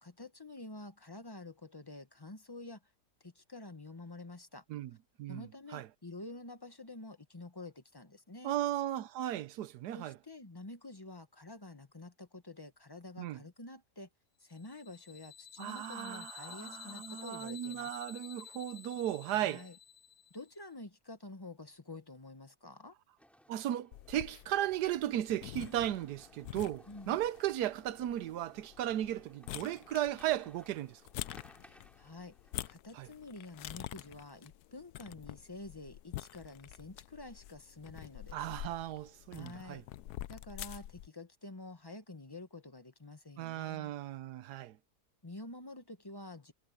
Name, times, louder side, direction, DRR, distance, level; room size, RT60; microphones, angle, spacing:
voice 1, 0.0-2.8 3.2-4.6 5.3-8.6 9.9-14.1 14.4-18.0 19.3-19.8 20.3-22.9 26.9-27.2 31.6-32.3 32.7-38.4 39.3-39.8 40.3-43.9 45.2-46.5, left 2 dB, 15° left, 0.9 m, -49 dB
voice 2, 8.4-10.2 13.2-13.4 15.6-19.7 23.5-31.0 32.9-33.1 38.3-39.8 43.4-44.8, right 12 dB, 80° right, 1.2 m, -36 dB
sound 1, 14.6-20.5, left 9 dB, 45° left, 0.8 m, -51 dB
sound 2, 23.2-32.7, equal, ahead, 3.7 m, -62 dB
sound 3, 23.9-41.1, left 14 dB, 75° left, 1.1 m, -48 dB
omnidirectional pair, 1.7 m